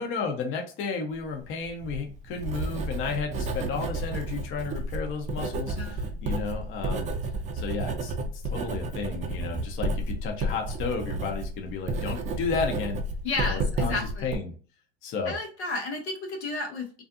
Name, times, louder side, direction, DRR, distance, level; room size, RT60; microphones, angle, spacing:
voice 1, 0.0-8.1 8.5-13.0 13.4-14.5 15.0-15.3, left 4 dB, 40° left, 3 dB, 0.7 m, -33 dB
Writing, 1.6-14.4, right 2 dB, 25° right, 0.4 m, -31 dB
voice 2, 5.8-6.1 13.2-14.4 15.3-17.0, left 3 dB, 90° left, 2 dB, 0.8 m, -32 dB
2.4 x 2.4 x 2.5 m, 0.39 s
hypercardioid pair, 100°, 32 cm